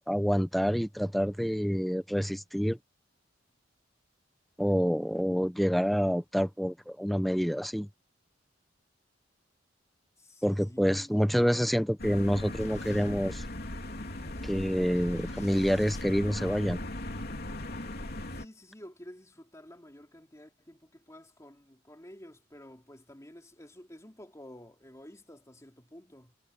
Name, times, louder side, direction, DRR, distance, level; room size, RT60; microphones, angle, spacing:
voice 1, 0.1-2.8 4.6-7.9 10.4-13.4 14.4-16.8, equal, ahead, 0.8 m, -27 dB
voice 2, 10.2-11.3 18.3-26.4, left 1 dB, 15° left, 3.4 m, -51 dB
sound 1, 12.0-18.5, left 1 dB, 55° left, 3.2 m, -38 dB
Boom, 12.6-17.0, left 2 dB, 35° left, 2.2 m, -52 dB
head